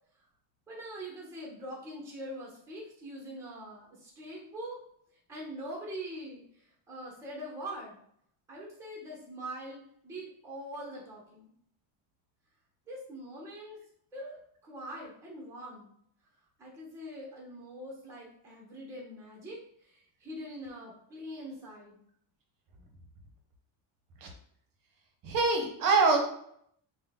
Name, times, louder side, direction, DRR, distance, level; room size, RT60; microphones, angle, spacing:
voice 1, 0.7-4.8 5.3-8.0 8.5-11.5 12.9-13.8 14.1-15.9 16.6-22.0, right 1 dB, 5° right, -4 dB, 0.7 m, -43 dB
voice 2, 25.2-26.2, right 3 dB, 45° right, 2 dB, 0.7 m, -24 dB
3.6 x 2.2 x 3.5 m, 0.68 s
cardioid pair, 155°, 49 cm